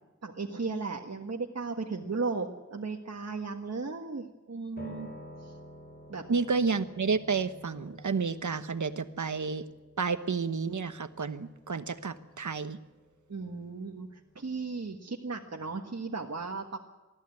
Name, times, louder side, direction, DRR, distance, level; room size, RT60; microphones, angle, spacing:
voice 1, 0.2-5.1 5.4-5.6 6.1-6.2 13.3-16.8, right 4 dB, 60° right, 1 dB, 1.5 m, -36 dB
Piano, 4.8-14.7, left 1 dB, 35° left, 4.7 m, -51 dB
voice 2, 6.3-9.6 10.0-12.8, right 5 dB, 80° right, 11 dB, 1.1 m, -30 dB
20.5 x 14.0 x 9.7 m, 1.2 s
wide cardioid pair, 50°, 29 cm